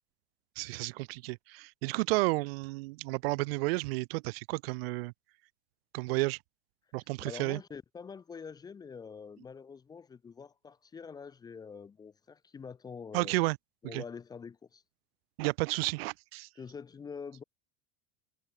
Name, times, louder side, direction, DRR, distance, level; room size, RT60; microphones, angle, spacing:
voice 1, 0.6-5.1 5.9-6.4 6.9-7.6 13.1-13.6 13.9-14.0 15.4-16.5, right 24 dB, 60° right, 0.8 m, -32 dB
voice 2, 7.2-13.3 13.8-14.8 16.6-17.4, left 6 dB, 10° left, 0.8 m, -45 dB
supercardioid pair, 170°, 34 cm